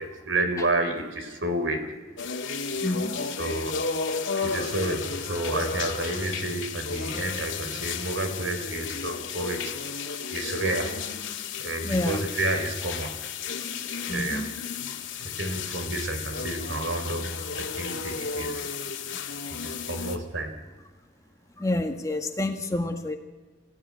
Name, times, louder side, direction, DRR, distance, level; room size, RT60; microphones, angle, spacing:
voice 1, 0.0-1.8 3.2-3.8 4.4-9.7 10.3-10.9 11.6-13.1 14.1-14.4 15.2-18.7 19.6-20.5, right 2 dB, 80° right, 6 dB, 3.4 m, -30 dB
sound 1, 2.2-20.2, left 5 dB, 85° left, 2.0 m, -33 dB
voice 2, 2.8-3.3 11.8-12.2 14.1-14.4 21.6-23.2, left 1 dB, 15° left, 4 dB, 1.6 m, -28 dB
25.5 x 16.0 x 9.6 m, 1.3 s
head